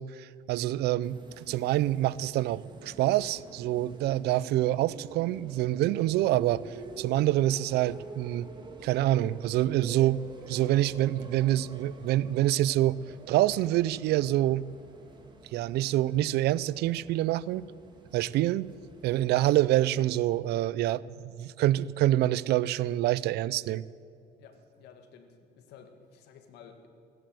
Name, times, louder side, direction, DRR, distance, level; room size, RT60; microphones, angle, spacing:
voice 1, 0.0-8.5 8.8-10.2 10.5-13.0 13.3-14.7 15.5-17.6 18.1-18.7 19.0-21.0 21.4-23.9, right 14 dB, 75° right, 21 dB, 0.4 m, -26 dB
sound 1, 1.0-20.4, right 2 dB, 25° right, 2.1 m, -48 dB
voice 2, 24.4-26.9, left 6 dB, 85° left, 6 dB, 1.7 m, -53 dB
15.5 x 11.0 x 7.7 m, 2.4 s
cardioid pair, 110°, 17 cm